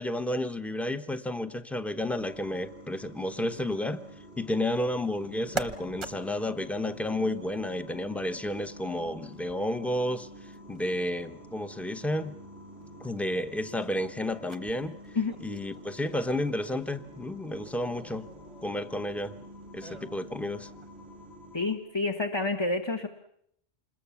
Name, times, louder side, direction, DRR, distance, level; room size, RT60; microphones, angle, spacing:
voice 1, 0.0-4.0 4.4-10.3 10.7-12.4 13.0-15.0 15.4-18.3 18.6-19.3 19.7-20.7, left 1 dB, ahead, 11 dB, 0.7 m, -31 dB
sound 1, 2.1-21.7, equal, 55° left, 7.5 m, -48 dB
sound 2, 4.4-21.4, right 4 dB, 25° right, 1.0 m, -47 dB
voice 2, 21.5-23.1, left 3 dB, 20° left, 4 dB, 1.1 m, -29 dB
27.0 x 21.0 x 7.1 m, 0.71 s
omnidirectional pair, 1.3 m